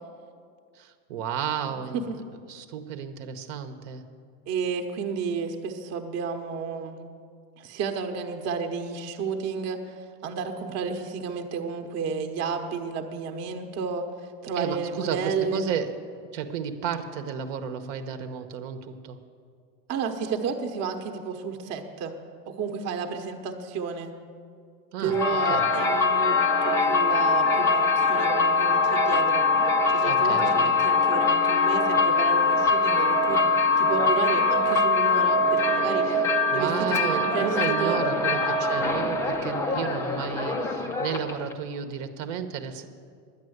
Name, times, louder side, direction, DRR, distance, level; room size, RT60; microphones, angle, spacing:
voice 1, 0.8-2.0 2.5-4.0 14.6-15.9 16.3-19.2 24.9-25.7 30.1-30.7 36.1-36.2 36.5-42.9, right 8 dB, 65° right, 8 dB, 1.0 m, -32 dB
voice 2, 4.5-7.0 7.6-14.1 14.4-15.7 19.9-22.1 22.5-24.1 25.0-29.5 29.9-33.5 33.8-36.1 36.5-38.0, right 5 dB, 35° right, 5 dB, 1.0 m, -31 dB
sound 1, 25.1-41.5, left 3 dB, 10° left, 0.3 m, -23 dB
10.5 x 9.9 x 7.9 m, 2.1 s
supercardioid pair, 145°, 44 cm